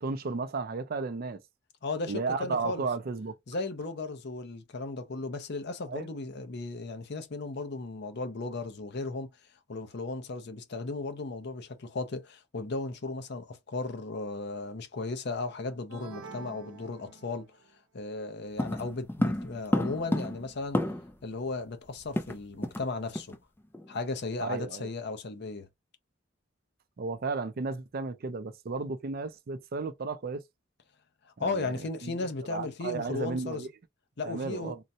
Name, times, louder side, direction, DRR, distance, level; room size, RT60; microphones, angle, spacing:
voice 1, 0.0-1.4 2.1-3.4 5.9-6.1 24.4-24.9 27.0-30.4 31.4-32.2 32.5-33.7 34.2-34.8, right 4 dB, 50° right, 0.4 m, -34 dB
voice 2, 1.8-2.9 3.5-9.3 9.7-17.5 17.9-20.8 21.2-23.4 23.9-25.7 31.2-33.7 34.2-34.7, left 3 dB, 55° left, 0.6 m, -36 dB
sound 1, 15.9-17.7, right 5 dB, 85° right, 0.7 m, -47 dB
sound 2, 18.6-21.2 21.5-21.6 21.9-22.9 23.1-23.4 23.7-24.0, left 1 dB, 10° left, 0.4 m, -31 dB
3.8 x 2.1 x 2.7 m
head